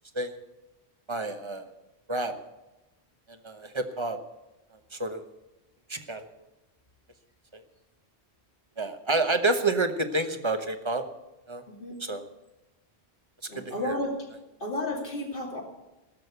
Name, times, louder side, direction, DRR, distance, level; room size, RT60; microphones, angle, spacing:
voice 1, 1.1-1.7 2.1-2.3 3.3-4.2 4.9-5.2 5.9-6.3 7.5-7.6 8.8-11.0 11.5-11.6 12.0-12.2 13.5-14.0, right 2 dB, 25° right, 6 dB, 1.1 m, -29 dB
voice 2, 13.5-14.3 14.6-15.6, left 1 dB, 55° left, 0 dB, 2.8 m, -32 dB
17.5 x 6.4 x 8.0 m, 1.0 s
omnidirectional pair, 1.1 m